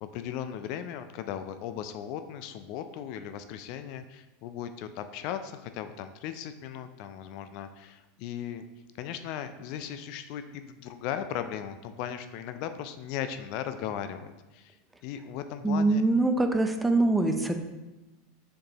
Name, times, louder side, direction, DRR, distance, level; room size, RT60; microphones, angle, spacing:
voice 1, 0.0-8.6 9.0-14.7 15.0-16.0, left 9 dB, 55° left, 10 dB, 0.3 m, -37 dB
voice 2, 15.6-17.6, right 2 dB, 10° right, 6 dB, 0.6 m, -24 dB
7.3 x 4.4 x 2.9 m, 1.1 s
figure-of-eight pair, 85°, 0 cm